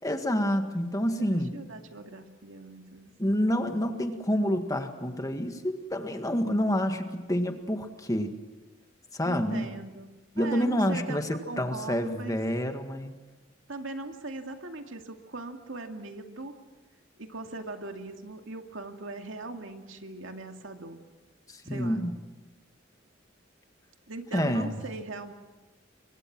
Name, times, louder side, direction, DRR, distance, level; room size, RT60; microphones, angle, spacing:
voice 1, 0.0-1.6 3.2-8.3 9.1-9.7 10.4-11.3 11.6-13.2 21.5-22.1 24.3-24.8, equal, 15° left, 6 dB, 1.8 m, -28 dB
voice 2, 1.2-3.4 9.2-10.1 10.4-11.2 11.5-12.4 13.7-16.6 17.2-21.0 21.6-22.0 24.1-25.3, right 2 dB, 80° right, 4 dB, 2.3 m, -40 dB
30.0 x 24.0 x 6.1 m, 1.2 s
head